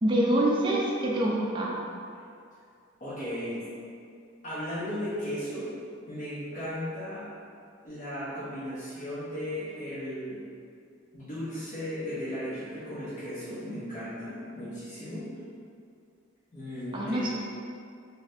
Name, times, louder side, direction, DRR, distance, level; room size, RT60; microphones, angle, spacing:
voice 1, 0.0-1.8 16.9-17.3, right 1 dB, 25° right, -4 dB, 0.4 m, -25 dB
voice 2, 3.0-3.6 4.4-5.7 6.1-7.2 7.8-10.4 11.1-15.2 16.5-17.2, equal, 40° left, -13 dB, 0.7 m, -36 dB
2.7 x 2.6 x 3.3 m, 2.3 s
head